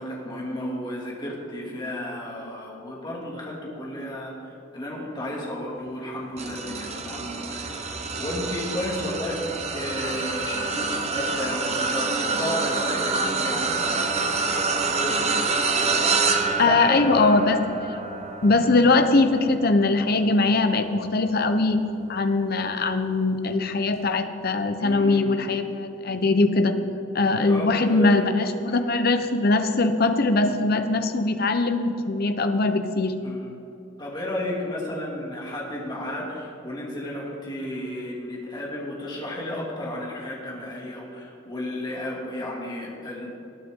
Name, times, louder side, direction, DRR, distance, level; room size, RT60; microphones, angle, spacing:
voice 1, 0.0-14.2 14.9-15.2 16.6-17.4 24.8-25.5 27.5-28.2 33.2-33.5 34.0-43.3, left 1 dB, 20° left, -4 dB, 2.6 m, -33 dB
sound 1, 6.4-21.9 22.4-22.7 23.9-24.0, right 4 dB, 35° right, 1.0 m, -27 dB
voice 2, 16.6-18.0 18.4-21.8 22.1-26.7 27.1-33.2, left 3 dB, 50° left, 8 dB, 0.8 m, -21 dB
20.0 x 9.0 x 3.8 m, 2.8 s
head